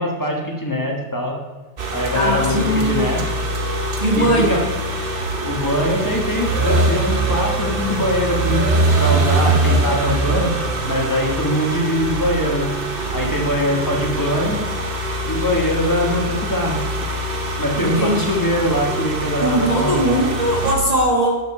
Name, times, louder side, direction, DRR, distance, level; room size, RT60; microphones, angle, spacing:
voice 1, 0.0-1.3 1.9-3.2 4.1-4.6 5.4-8.6 9.0-10.5 10.9-12.7 13.1-14.6 15.3-16.9 17.6-20.2, left 1 dB, 15° left, 0 dB, 1.2 m, -22 dB
sound 1, 1.8-20.8, right 2 dB, 40° right, 0.9 m, -23 dB
voice 2, 2.1-3.1 4.0-4.6 17.7-18.4 19.4-21.3, right 1 dB, 20° right, -5 dB, 1.6 m, -20 dB
12.5 x 5.2 x 4.8 m, 1.2 s
omnidirectional pair, 1.9 m